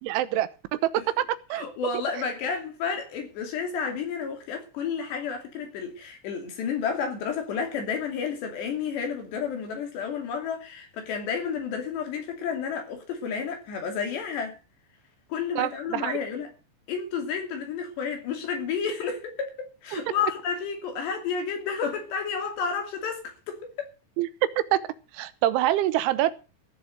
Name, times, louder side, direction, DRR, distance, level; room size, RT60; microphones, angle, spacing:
voice 1, 0.0-0.8 1.2-1.3 1.5-1.6 15.6-16.2 19.9-20.0 24.2-24.3 24.6-24.8 25.1-26.3, right 14 dB, 85° right, 3.4 m, -25 dB
voice 2, 1.5-14.6 15.3-16.5 16.9-23.9, left 6 dB, 65° left, 4.8 m, -31 dB
15.5 x 7.3 x 7.8 m
omnidirectional pair, 5.4 m